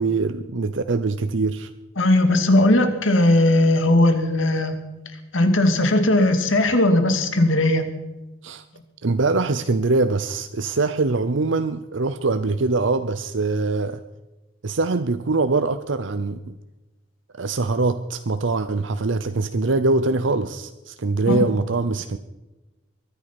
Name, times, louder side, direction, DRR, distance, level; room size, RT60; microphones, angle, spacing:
voice 1, 0.0-1.7 8.4-8.6 9.0-14.0 14.6-16.6 17.3-22.2, right 3 dB, 70° right, 11 dB, 0.7 m, -23 dB
voice 2, 2.0-4.7 5.3-7.8 21.3-21.5, left 1 dB, 90° left, 7 dB, 2.3 m, -18 dB
23.0 x 9.6 x 6.0 m, 1.1 s
head